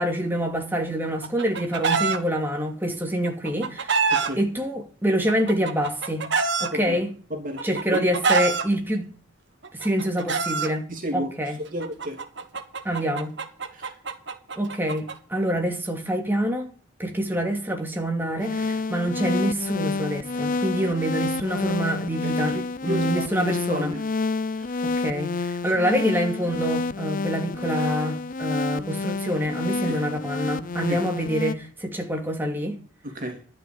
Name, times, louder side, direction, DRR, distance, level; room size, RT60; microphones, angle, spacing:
voice 1, 0.0-4.0 4.4-6.3 6.6-7.1 7.6-9.1 9.7-11.6 12.8-13.4 14.6-16.7 17.0-24.0 24.8-32.8, equal, 10° right, 2.5 m, -26 dB
Chicken rooster, 1.0-2.2 3.2-4.3 5.3-6.7 7.6-8.6 9.6-10.7 11.8-15.1, right 5 dB, 65° right, 1.7 m, -25 dB
voice 2, 4.1-4.4 6.7-7.0 7.3-8.1 10.9-11.3 11.6-12.2 13.7-13.9 22.2-24.0 24.5-24.9 25.6-25.7 29.9-30.0 30.9-31.0 33.0-33.4, equal, 45° right, 3.0 m, -33 dB
sound 1, 18.4-31.5, left 3 dB, 45° left, 0.6 m, -28 dB
12.5 x 6.4 x 8.9 m
head